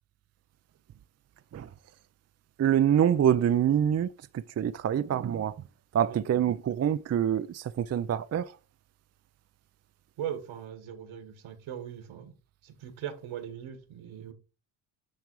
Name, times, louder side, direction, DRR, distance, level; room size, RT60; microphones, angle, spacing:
voice 1, 2.6-5.6 5.9-8.5, right 9 dB, 35° right, 0.5 m, -26 dB
voice 2, 10.2-12.3 12.6-14.3, right 9 dB, 75° right, 1.9 m, -39 dB
9.6 x 3.4 x 4.7 m
supercardioid pair, 75°, 48 cm